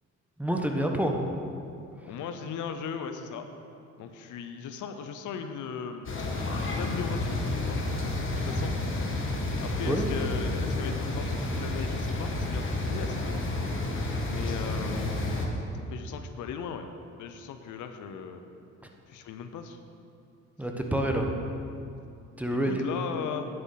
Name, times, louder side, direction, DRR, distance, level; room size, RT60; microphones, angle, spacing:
voice 1, 0.4-1.2 9.8-10.1 20.6-21.3 22.4-22.8, right 1 dB, 5° right, 2 dB, 1.2 m, -27 dB
voice 2, 2.0-3.5 4.0-6.1 6.7-7.8 8.3-8.7 9.6-13.5 14.3-15.1 15.9-16.9 17.2-18.4 19.1-19.8 22.5-23.5, left 6 dB, 80° left, 7 dB, 0.8 m, -37 dB
sound 1, 6.1-15.5, left 2 dB, 40° left, 1.7 m, -30 dB
9.7 x 7.8 x 5.7 m, 2.5 s
cardioid pair, 90°, 30 cm